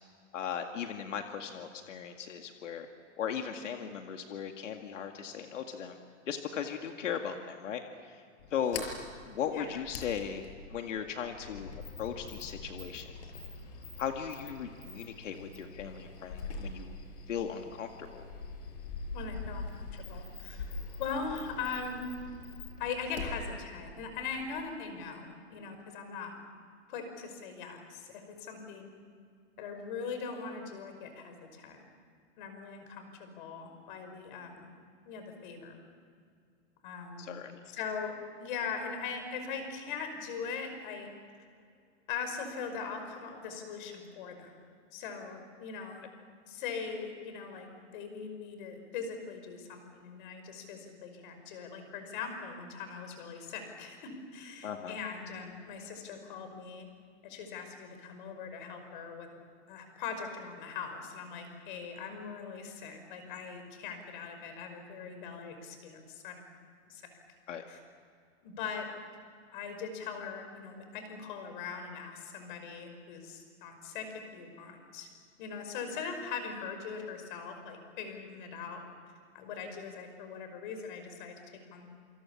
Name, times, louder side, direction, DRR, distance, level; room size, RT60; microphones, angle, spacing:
voice 1, 0.3-2.9 3.2-6.0 6.3-8.2 8.5-8.9 9.3-10.4 10.7-11.7 12.0-13.2 14.0-17.0 17.3-18.3 37.2-37.6 54.6-55.0 67.5-67.6, left 8 dB, 85° left, 4 dB, 2.2 m, -37 dB
Sliding door, 8.4-24.8, left 3 dB, 65° left, 5.8 m, -44 dB
voice 2, 19.1-20.7 21.0-22.0 22.8-26.3 26.9-28.9 29.6-31.8 32.4-34.7 35.0-35.8 36.8-37.3 37.7-41.1 42.1-44.5 44.9-46.0 46.5-56.9 57.2-59.3 59.7-66.4 66.9-67.1 67.7-67.8 68.4-68.9 69.5-74.1 74.3-75.1 75.4-78.8 79.3-81.3 81.7-81.9, left 5 dB, 40° left, 6 dB, 5.4 m, -41 dB
28.0 x 27.0 x 7.3 m, 2.2 s
supercardioid pair, 170°, 36 cm